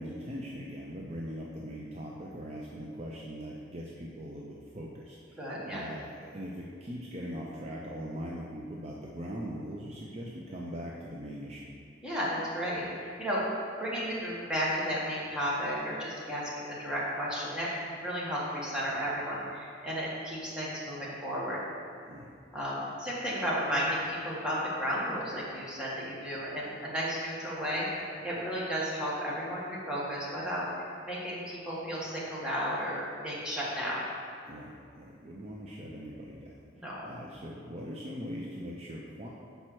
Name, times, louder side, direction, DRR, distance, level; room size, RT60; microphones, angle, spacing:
voice 1, 0.0-11.7 22.1-22.3 34.4-39.3, equal, 35° right, -3 dB, 0.5 m, -41 dB
voice 2, 5.4-5.8 12.0-13.4 13.8-21.6 22.5-34.0 36.7-37.1, equal, 5° right, -8 dB, 1.5 m, -33 dB
5.4 x 4.4 x 6.2 m, 2.3 s
head